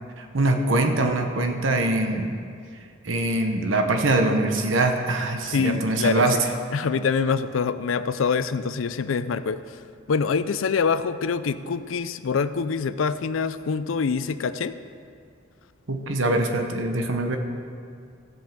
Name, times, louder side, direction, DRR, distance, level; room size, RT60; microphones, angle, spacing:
voice 1, 0.2-2.3 3.0-6.5 15.9-17.4, right 2 dB, 70° right, 5 dB, 1.0 m, -23 dB
voice 2, 5.5-6.4 6.7-9.8 10.1-14.7, left 5 dB, 80° left, 13 dB, 0.5 m, -25 dB
15.0 x 5.4 x 7.5 m, 2.3 s
head